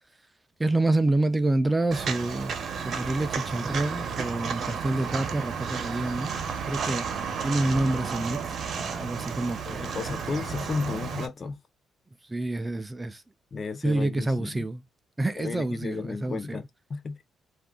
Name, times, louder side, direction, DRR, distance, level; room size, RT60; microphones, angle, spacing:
voice 1, 0.6-6.3 6.7-7.1 7.4-9.9 12.2-13.2 13.8-14.8 15.2-16.6, right 2 dB, 15° right, 0.4 m, -28 dB
Walk footsteps, 1.9-11.3, right 6 dB, 60° right, 0.8 m, -32 dB
voice 2, 9.7-11.6 13.5-14.6 15.4-17.3, left 4 dB, 40° left, 0.5 m, -33 dB
2.4 x 2.2 x 3.6 m
cardioid pair, 90°, 0 cm